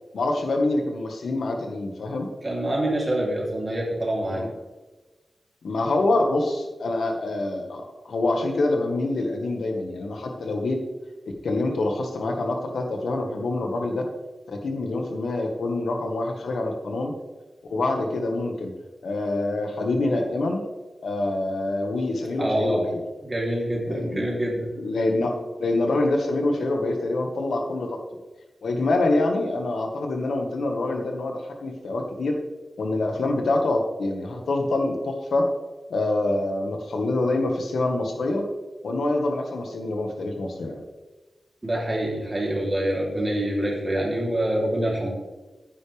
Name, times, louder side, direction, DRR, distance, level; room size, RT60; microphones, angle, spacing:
voice 1, 0.1-2.3 4.3-4.5 5.6-10.8 11.4-14.1 14.5-17.1 17.7-18.7 19.0-20.6 21.0-23.0 23.9-24.3 24.8-28.0 28.6-32.4 32.8-35.5 35.9-38.5 38.8-40.8, left 2 dB, 85° left, 3 dB, 1.8 m, -26 dB
voice 2, 2.4-4.5 22.4-22.9 23.2-24.7 41.6-45.1, right 1 dB, 20° right, -3 dB, 3.5 m, -26 dB
14.5 x 9.8 x 3.5 m, 1.2 s
wide cardioid pair, 140°, 0 cm